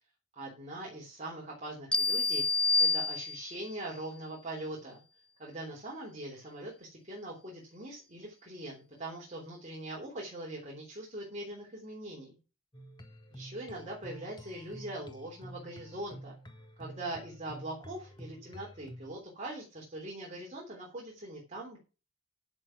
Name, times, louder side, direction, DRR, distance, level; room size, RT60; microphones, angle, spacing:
voice 1, 0.3-5.0 5.4-12.4 13.3-16.3 16.8-21.8, right 1 dB, 35° right, -2 dB, 3.4 m, -42 dB
sound 1, 1.9-3.7, left 3 dB, 5° left, 0.5 m, -28 dB
sound 2, 12.7-19.2, equal, 20° left, 1.4 m, -49 dB
11.0 x 6.5 x 6.0 m, 0.33 s
head